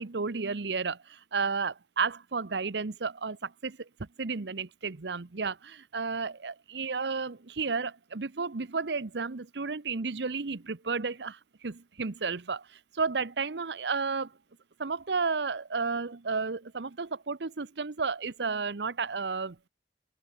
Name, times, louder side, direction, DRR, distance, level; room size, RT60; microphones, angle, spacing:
voice 1, 0.0-3.9 4.2-14.3 14.8-19.6, right 4 dB, 75° right, 0.9 m, -32 dB
head